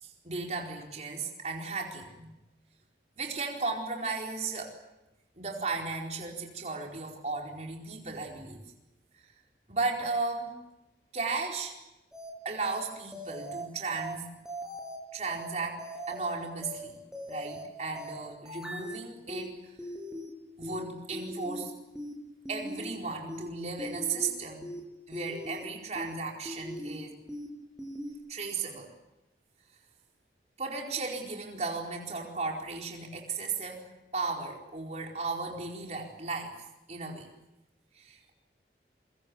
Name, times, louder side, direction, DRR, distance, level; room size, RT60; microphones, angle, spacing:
voice 1, 0.0-2.4 3.2-4.8 5.4-8.6 9.7-10.6 11.1-11.7 12.4-14.3 15.1-17.0 17.3-19.8 20.6-21.7 22.5-24.7 25.1-27.2 28.3-28.9 30.6-36.5 36.9-37.3 37.9-38.3, right 4 dB, 40° right, 0 dB, 4.5 m, -35 dB
sound 1, 12.1-12.3 12.6-12.8 13.1-13.6 14.0-14.1 14.5-15.0 15.3-15.5 15.8-16.3 16.6-16.8 17.1-17.6 18.0-18.1 18.5-19.0 19.3-19.5 19.8-20.3 20.6-20.8 21.1-21.6 22.0-22.1 22.5-23.0 23.3-23.5 23.8-24.3 24.6-24.8 25.1-25.6 26.0-26.1 26.5-27.0 27.3-27.5 27.8-28.1, equal, 5° right, 6.5 m, -40 dB
27.0 x 24.0 x 7.1 m, 0.95 s
head